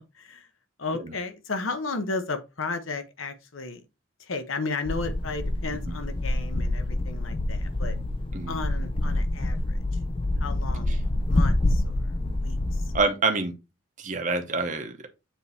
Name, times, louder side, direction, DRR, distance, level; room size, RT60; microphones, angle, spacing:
voice 1, 0.1-0.5 0.8-3.8 4.2-8.0 8.5-9.8 10.4-11.0 11.3-12.1 12.4-12.9, left 3 dB, 85° left, 1.1 m, -34 dB
sound 1, 4.9-13.0, left 1 dB, 25° left, 0.5 m, -27 dB
voice 2, 12.9-13.6 14.0-15.1, right 3 dB, 40° right, 1.0 m, -27 dB
7.4 x 3.6 x 4.2 m
head